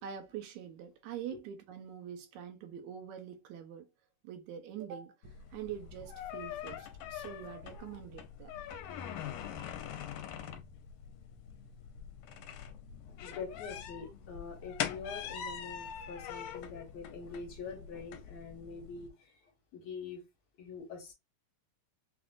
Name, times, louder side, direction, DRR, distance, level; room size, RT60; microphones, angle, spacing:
voice 1, 0.0-3.9 4.2-8.5, right 9 dB, 75° right, 1.9 m, -44 dB
sound 1, 5.2-19.1, left 9 dB, 75° left, 2.1 m, -43 dB
voice 2, 13.1-20.2 20.6-21.1, left 5 dB, 60° left, 2.3 m, -45 dB
6.0 x 2.4 x 2.4 m
omnidirectional pair, 3.8 m